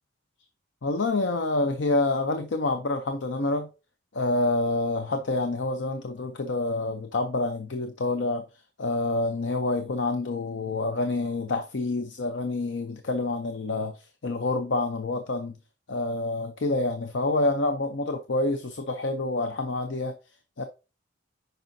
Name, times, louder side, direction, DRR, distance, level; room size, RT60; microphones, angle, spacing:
voice 1, 0.8-3.7 4.1-8.4 8.8-15.6 15.9-20.1 20.6-20.7, left 2 dB, 70° left, 0.6 m, -27 dB
9.1 x 5.4 x 2.7 m
head